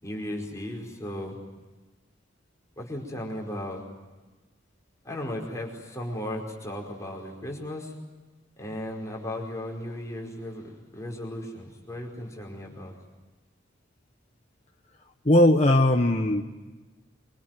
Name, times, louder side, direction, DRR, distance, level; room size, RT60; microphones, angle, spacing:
voice 1, 0.0-1.4 2.8-3.8 5.0-7.9 8.6-12.9, left 1 dB, 15° left, 0 dB, 5.1 m, -36 dB
voice 2, 15.2-16.4, left 1 dB, 35° left, 1 dB, 1.3 m, -19 dB
25.5 x 25.0 x 9.3 m, 1.2 s
head